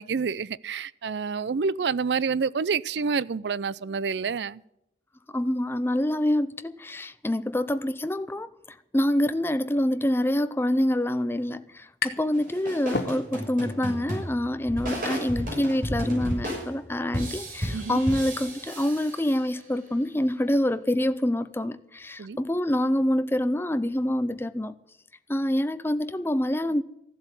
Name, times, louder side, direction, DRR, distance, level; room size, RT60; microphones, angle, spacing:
voice 1, 0.0-4.6 17.7-18.0 22.2-22.4, right 5 dB, 75° right, 0.5 m, -28 dB
voice 2, 5.3-8.5 8.9-24.7 25.3-26.8, left 1 dB, 15° left, 0.6 m, -26 dB
sound 1, 11.2-12.4 12.7-13.6, left 4 dB, 65° left, 1.3 m, -32 dB
sound 2, 12.3-19.7, equal, 50° right, 6.2 m, -33 dB
15.5 x 7.6 x 9.8 m
head